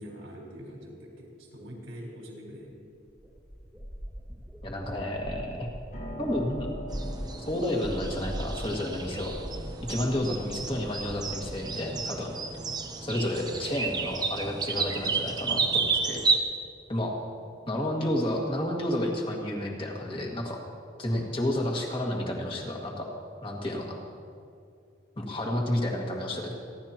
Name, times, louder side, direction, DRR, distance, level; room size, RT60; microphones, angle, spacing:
voice 1, 0.0-2.8, equal, 90° right, -2 dB, 4.4 m, -44 dB
sound 1, 2.7-2.8 3.1-11.6, equal, 5° right, 1.9 m, -41 dB
voice 2, 4.6-5.7 6.2-6.7 7.5-9.3 9.9-12.3 13.0-16.2 16.9-17.2 17.7-20.6 21.0-23.1 23.4-24.0 25.2-26.5, left 1 dB, 25° left, -1 dB, 1.9 m, -31 dB
Piano, 5.9-15.9, left 1 dB, 50° left, 4.6 m, -46 dB
sound 2, 6.9-16.4, right 4 dB, 20° right, 0.7 m, -32 dB
29.0 x 12.0 x 3.0 m, 2.4 s
head